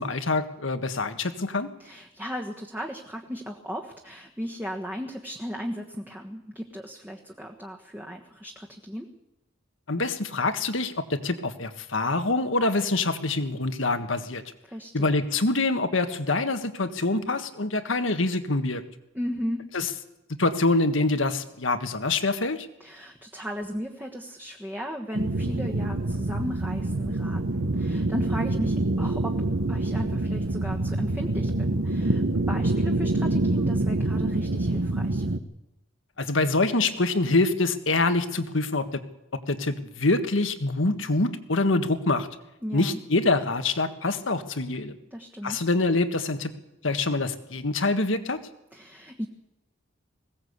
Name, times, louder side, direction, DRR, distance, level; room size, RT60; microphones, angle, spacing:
voice 1, 0.0-1.7 9.9-14.4 14.9-18.8 19.7-19.9 20.4-22.7 36.2-39.0 39.5-42.3 42.7-45.0 45.4-46.5 46.8-48.4, left 2 dB, 75° left, 9 dB, 1.7 m, -25 dB
voice 2, 1.8-9.1 14.7-15.1 19.1-19.6 22.8-29.4 29.7-32.2 32.5-35.2 42.6-43.0 45.1-45.6 48.7-49.3, equal, 10° right, 1 dB, 1.4 m, -36 dB
sound 1, 25.1-35.4, right 2 dB, 80° right, 1.0 m, -26 dB
20.5 x 17.0 x 8.2 m, 0.89 s
head